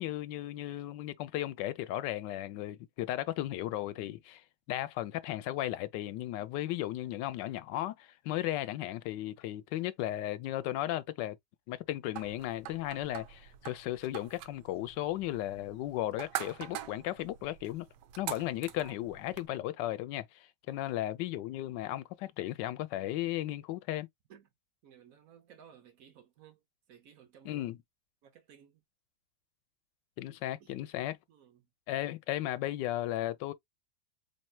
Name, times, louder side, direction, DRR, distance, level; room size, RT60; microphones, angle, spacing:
voice 1, 0.0-4.4 4.7-11.4 11.7-17.9 18.2-24.1 27.4-27.8 30.2-31.2 31.9-33.5, left 14 dB, 90° left, 1.2 m, -35 dB
sound 1, 12.2-19.5, right 12 dB, 80° right, 1.2 m, -44 dB
voice 2, 24.8-26.6 26.9-27.8 28.2-28.8 30.6-30.8 31.3-31.7, right 8 dB, 60° right, 1.2 m, -58 dB
4.3 x 3.2 x 2.2 m
omnidirectional pair, 1.9 m